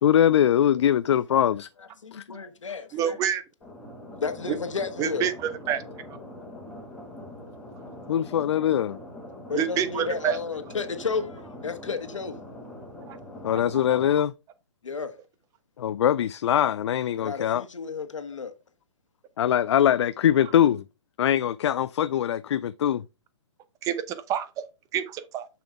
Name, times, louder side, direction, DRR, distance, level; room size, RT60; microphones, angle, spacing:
voice 1, 0.0-1.7 2.1-2.2 8.1-9.0 13.4-14.3 15.8-17.6 19.4-20.8 21.2-23.0, left 10 dB, 65° left, 0.4 m, -22 dB
voice 2, 1.8-3.2 4.2-5.3 9.5-12.4 14.8-15.1 17.2-18.5, left 5 dB, 85° left, 1.4 m, -32 dB
voice 3, 2.9-3.4 4.5-4.6 5.0-5.8 6.1-6.2 9.6-10.4 13.1-13.2 23.8-24.6 24.9-25.5, right 9 dB, 20° right, 0.7 m, -27 dB
sound 1, 3.6-14.1, left 1 dB, 5° left, 2.3 m, -43 dB
6.9 x 5.9 x 3.4 m
hypercardioid pair, 135°, 16 cm